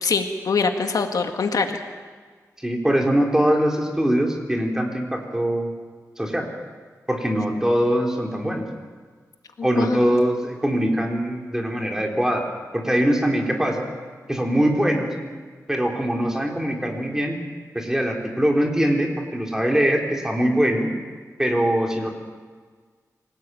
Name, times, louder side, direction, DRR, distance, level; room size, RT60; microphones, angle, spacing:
voice 1, 0.0-1.8 9.8-10.3, left 4 dB, 80° left, 5 dB, 1.9 m, -24 dB
voice 2, 2.6-5.7 6.2-6.5 7.1-8.7 9.6-12.4 12.7-13.9 14.3-15.2 15.7-17.4 17.7-20.9 21.4-22.1, equal, 10° right, 1 dB, 3.7 m, -22 dB
25.0 x 17.5 x 9.2 m, 1.5 s
wide cardioid pair, 125°, 6 cm